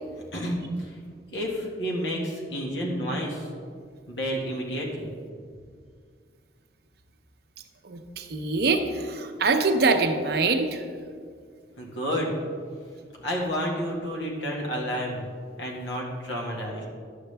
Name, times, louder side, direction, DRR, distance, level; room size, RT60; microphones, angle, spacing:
voice 1, 0.3-1.0 1.3-3.5 4.1-5.2 11.8-12.4 13.2-15.3 15.6-16.8, equal, 85° left, -1 dB, 1.7 m, -30 dB
voice 2, 7.9-8.8 9.2-10.8, right 3 dB, 60° right, 6 dB, 0.7 m, -24 dB
11.0 x 7.0 x 3.4 m, 2.1 s
head